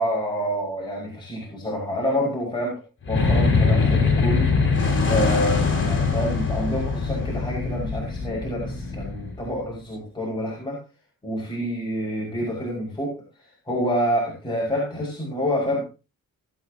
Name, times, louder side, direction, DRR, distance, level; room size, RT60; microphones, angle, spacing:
voice 1, 0.0-2.8 3.1-4.5 5.1-10.8 11.2-15.8, equal, 15° left, -4 dB, 6.1 m, -27 dB
sound 1, 3.0-9.6, left 4 dB, 35° left, 5.7 m, -22 dB
20.0 x 9.5 x 3.0 m, 0.31 s
cardioid pair, 110°, 35 cm